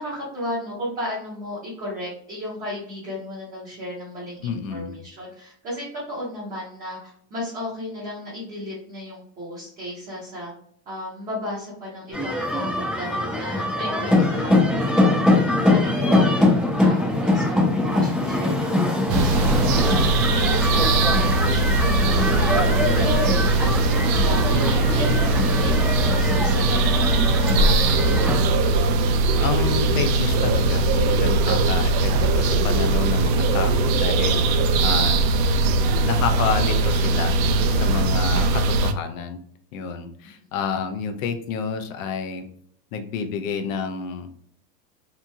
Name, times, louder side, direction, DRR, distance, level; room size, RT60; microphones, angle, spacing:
voice 1, 0.0-10.5 10.9-15.1 15.5-19.8 20.1-23.2 23.6-28.5, left 1 dB, 20° right, -7 dB, 0.7 m, -34 dB
voice 2, 4.4-5.0 14.2-14.7 29.4-35.2 36.0-39.4 39.7-42.5 42.9-44.3, left 6 dB, 55° left, 7 dB, 0.5 m, -29 dB
sound 1, 12.1-28.4, left 1 dB, 5° left, 0.3 m, -22 dB
sound 2, 19.1-38.9, right 2 dB, 85° right, 0.6 m, -20 dB
2.8 x 2.6 x 2.3 m, 0.62 s
supercardioid pair, 160°, 49 cm